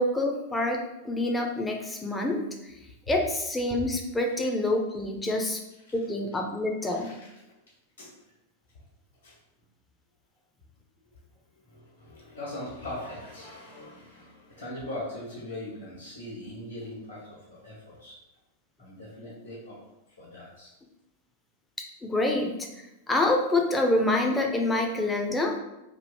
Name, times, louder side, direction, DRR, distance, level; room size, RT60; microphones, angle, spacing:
voice 1, 0.0-2.4 3.1-5.6 5.9-7.1 22.0-22.7 23.1-25.6, left 2 dB, 10° left, 2 dB, 0.6 m, -26 dB
voice 2, 6.8-7.2 8.0-8.1 9.2-9.4 11.7-18.2 18.8-19.8 20.2-20.7, left 1 dB, 80° left, -7 dB, 1.3 m, -40 dB
3.1 x 2.7 x 4.2 m, 0.92 s
figure-of-eight pair, 90°, 0 cm